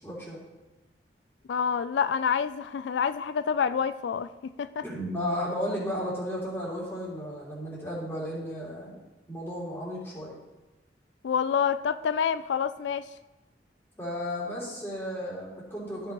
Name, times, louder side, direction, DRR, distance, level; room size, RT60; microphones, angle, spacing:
voice 1, 0.0-0.4 4.8-9.0 9.3-10.4 14.0-16.1, equal, 15° left, -6 dB, 3.0 m, -34 dB
voice 2, 1.5-4.3 4.6-4.8 11.2-13.0, left 7 dB, 75° left, 13 dB, 0.3 m, -27 dB
14.5 x 5.7 x 3.0 m, 1.1 s
head